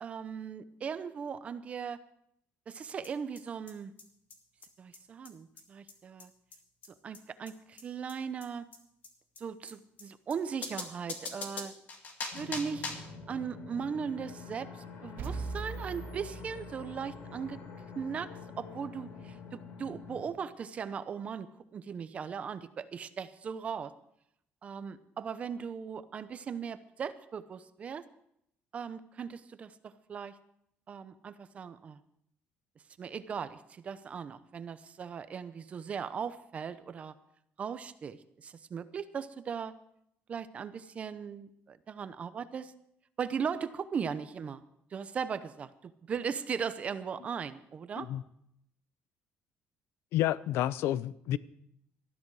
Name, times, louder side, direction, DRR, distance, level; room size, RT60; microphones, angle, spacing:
voice 1, 0.0-2.0 2.7-3.9 4.8-6.3 7.0-8.7 9.4-11.7 12.2-12.9 13.3-17.6 17.9-18.3 18.6-23.9 24.6-28.0 28.7-30.3 30.9-32.0 33.0-37.1 37.6-39.7 40.3-42.7 43.2-44.6 44.9-48.1, right 6 dB, 30° right, 13 dB, 0.7 m, -38 dB
sound 1, 3.0-3.1 3.3-3.4 3.7-3.8 4.0-4.1 4.3-4.4 4.6-4.7 4.9-5.0 5.2-5.3 5.6-5.7 5.9-6.0 6.2-6.3 6.5-6.6 6.8-6.9 7.1-7.2 7.5-7.6 7.8-7.9 8.1-8.2 8.4-8.5 8.7-8.8 9.0-9.1 9.3-9.4 9.7-9.8 10.0-10.1 10.3-10.4 10.6-13.1, left 3 dB, 40° left, 2.2 m, -41 dB
sound 2, 12.3-20.3, left 5 dB, 60° left, 3.0 m, -47 dB
sound 3, 15.2-17.2, right 4 dB, 50° right, 2.9 m, -40 dB
voice 2, 50.1-51.4, left 13 dB, 80° left, 18 dB, 0.6 m, -30 dB
19.0 x 13.5 x 4.8 m, 0.73 s
cardioid pair, 170°, 4 cm